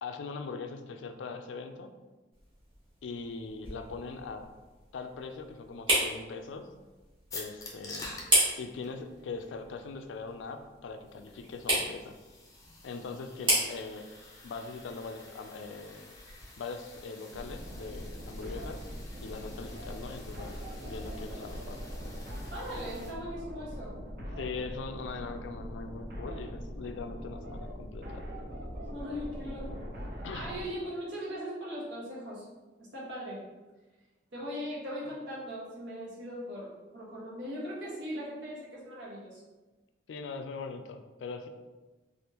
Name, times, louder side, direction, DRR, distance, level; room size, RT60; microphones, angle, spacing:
voice 1, 0.0-1.9 3.0-4.4 4.9-6.7 7.3-8.2 8.6-12.2 12.8-14.1 14.4-16.1 16.6-18.8 19.2-21.8 24.2-28.3 30.2-30.5 40.1-41.5, left 4 dB, 90° left, 7 dB, 0.3 m, -41 dB
sound 1, 2.3-17.1, right 1 dB, 30° right, 1.2 m, -35 dB
sound 2, 7.3-23.1, left 2 dB, 20° left, 0.4 m, -50 dB
sound 3, 17.3-30.7, equal, 55° right, 0.5 m, -41 dB
voice 2, 22.5-23.9 28.9-29.8 30.3-32.5 32.8-33.4 34.3-39.4, equal, 85° right, -6 dB, 1.1 m, -39 dB
3.4 x 2.4 x 2.9 m, 1.2 s
head